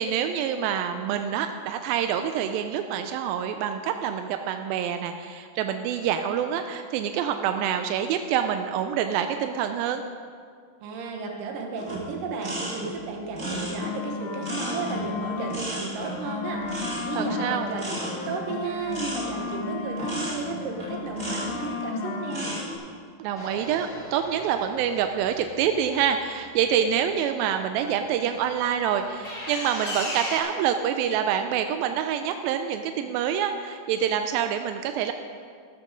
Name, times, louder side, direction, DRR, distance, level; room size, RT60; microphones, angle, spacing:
voice 1, 0.0-10.0 17.2-17.7 23.2-35.1, right 9 dB, 90° right, 7 dB, 2.4 m, -26 dB
voice 2, 10.8-22.6, right 3 dB, 70° right, 2 dB, 2.8 m, -34 dB
sound 1, 11.8-21.8 22.2-22.7, right 1 dB, 20° right, 2.3 m, -35 dB
sound 2, 13.3-15.7 16.0-20.3 20.6-22.6, left 5 dB, 80° left, 2.6 m, -34 dB
sound 3, 23.3-27.1 28.9-30.4, left 1 dB, 25° left, 1.9 m, -37 dB
13.5 x 13.0 x 3.8 m, 2.1 s
omnidirectional pair, 4.1 m